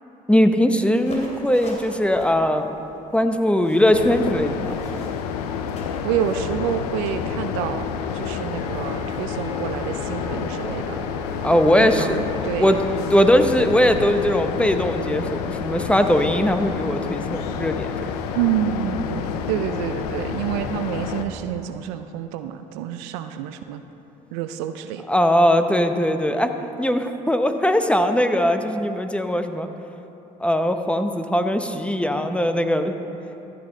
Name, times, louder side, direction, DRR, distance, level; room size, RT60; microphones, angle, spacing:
voice 1, 0.3-2.8 3.1-4.8 11.4-12.3 12.6-12.8 13.1-18.1 25.1-26.5 26.8-29.7 30.4-32.9, equal, 5° left, 7 dB, 0.8 m, -20 dB
sound 1, 0.9-6.4, left 1 dB, 35° left, 2.8 m, -42 dB
sound 2, 3.9-21.3, left 7 dB, 90° left, 0.5 m, -29 dB
voice 2, 6.0-7.9 8.1-11.0 11.8-12.8 18.3-23.8 24.3-25.0, right 10 dB, 85° right, 10 dB, 0.4 m, -28 dB
Wind instrument woodwind instrument, 8.5-13.3, left 1 dB, 15° right, 1.7 m, -41 dB
14.0 x 8.4 x 3.8 m, 2.9 s
hypercardioid pair, 55°, 20 cm